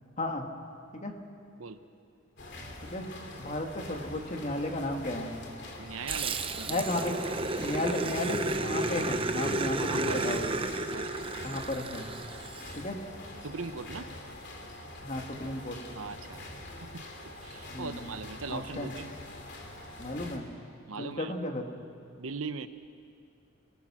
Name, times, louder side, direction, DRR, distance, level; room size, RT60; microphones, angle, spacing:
voice 1, 0.2-0.5 0.9-1.1 2.8-3.1 3.4-5.3 6.7-7.2 7.6-10.5 11.4-12.1 12.8-13.0 15.0-15.8 17.7-18.1 18.5-18.9 20.0-20.5 21.0-21.7, left 1 dB, 35° left, 3 dB, 2.0 m, -34 dB
sound 1, 2.4-20.4, left 1 dB, 55° left, 2.9 m, -45 dB
voice 2, 5.8-6.8 9.8-10.4 10.9-11.3 13.4-14.1 16.0-16.4 16.8-17.1 17.4-19.1 20.9-21.3 22.2-22.7, right 4 dB, 80° right, 10 dB, 1.0 m, -39 dB
Growling, 6.1-12.8, right 2 dB, 25° right, 0.8 m, -32 dB
29.5 x 19.0 x 6.3 m, 2.4 s
head